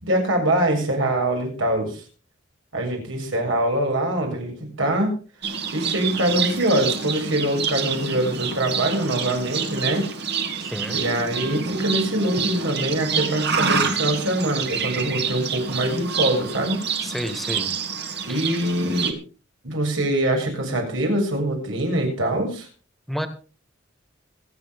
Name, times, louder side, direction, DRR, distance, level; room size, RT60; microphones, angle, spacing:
voice 1, 0.0-2.0 2.7-5.2 5.7-10.1 10.9-16.8 18.2-19.1 19.6-22.7, right 1 dB, 85° right, 1 dB, 7.0 m, -23 dB
Livestock farm animals working animals, 5.4-19.1, right 6 dB, 60° right, 2.4 m, -27 dB
voice 2, 10.6-11.0 17.0-17.7 18.3-18.4 23.1-23.3, equal, ahead, 8 dB, 1.9 m, -30 dB
26.5 x 9.0 x 3.7 m, 0.36 s
head